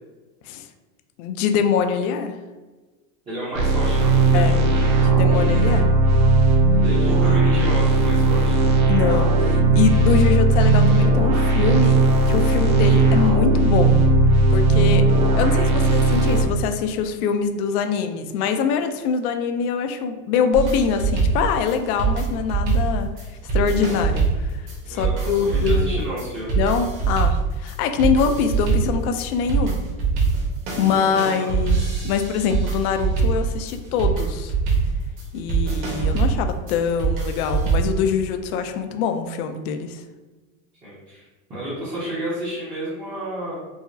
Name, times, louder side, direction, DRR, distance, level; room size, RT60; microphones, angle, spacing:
voice 1, 1.2-2.4 4.3-4.6 5.0-5.9 7.0-7.6 8.9-12.0 12.3-14.0 14.5-15.0 15.3-23.1 23.5-26.0 26.5-29.8 30.8-34.5 35.3-40.0, left 6 dB, 75° left, 6 dB, 0.5 m, -24 dB
voice 2, 3.3-5.1 6.8-8.6 24.9-26.7 30.9-31.5 40.8-41.2 41.5-43.6, right 1 dB, 10° right, -11 dB, 0.5 m, -32 dB
sound 1, 3.5-16.4, right 2 dB, 65° right, 0.8 m, -17 dB
sound 2, 20.5-38.0, right 5 dB, 35° right, 0.9 m, -23 dB
4.8 x 2.0 x 2.6 m, 1.2 s
supercardioid pair, 165°, 45 cm